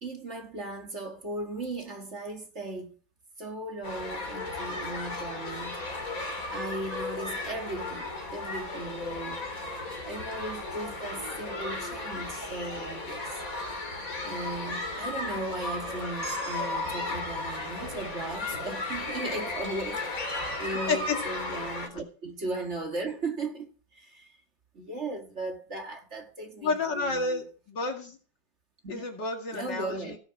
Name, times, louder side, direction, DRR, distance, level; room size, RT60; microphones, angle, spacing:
voice 1, 0.0-3.0 3.4-5.8 6.5-9.4 10.0-13.4 14.2-24.3 24.7-27.4 28.8-29.1 29.5-30.2, right 2 dB, 40° right, 2.2 m, -37 dB
sound 1, 3.8-21.9, left 2 dB, 45° left, 3.7 m, -35 dB
sound 2, 16.2-20.5, right 2 dB, 65° right, 3.5 m, -50 dB
voice 2, 26.6-28.2 28.9-30.2, left 3 dB, 70° left, 2.9 m, -30 dB
17.0 x 6.9 x 6.1 m
omnidirectional pair, 2.0 m